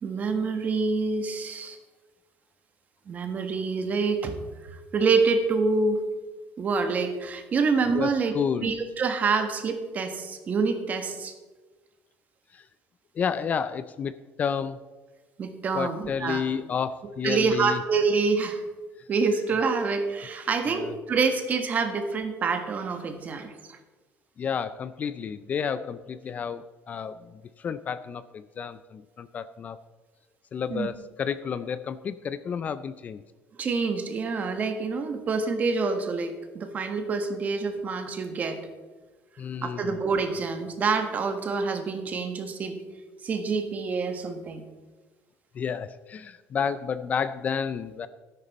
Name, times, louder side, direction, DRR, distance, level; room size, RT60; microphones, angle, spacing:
voice 1, 0.0-1.8 3.1-6.0 6.6-8.3 8.6-11.3 15.4-16.4 17.2-18.6 19.1-23.8 30.7-30.9 33.6-38.6 39.6-42.8 43.2-44.6, right 4 dB, 30° right, 7 dB, 1.4 m, -27 dB
voice 2, 7.9-8.7 12.5-12.6 13.2-14.8 15.7-17.8 20.7-20.9 24.4-29.8 30.5-33.2 39.4-40.0 45.5-48.1, left 7 dB, 30° left, 14 dB, 0.4 m, -31 dB
12.5 x 10.5 x 4.2 m, 1.3 s
cardioid pair, 150°, 5 cm